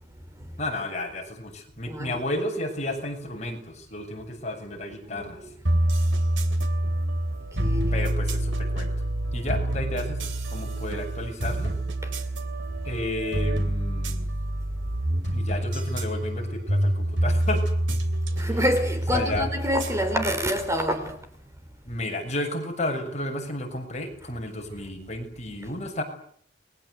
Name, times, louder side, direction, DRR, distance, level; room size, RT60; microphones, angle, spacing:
voice 1, 0.6-5.4 7.9-8.9 9.3-11.7 12.8-14.3 15.3-17.6 19.1-19.5 21.8-26.0, left 1 dB, 40° left, 6.7 m, -32 dB
voice 2, 5.0-5.5 6.9-7.1 7.6-8.0 12.0-12.1 18.3-21.3, equal, 15° right, 4.0 m, -27 dB
sound 1, 5.6-20.9, right 1 dB, 80° right, 3.0 m, -27 dB
30.0 x 22.5 x 8.2 m
head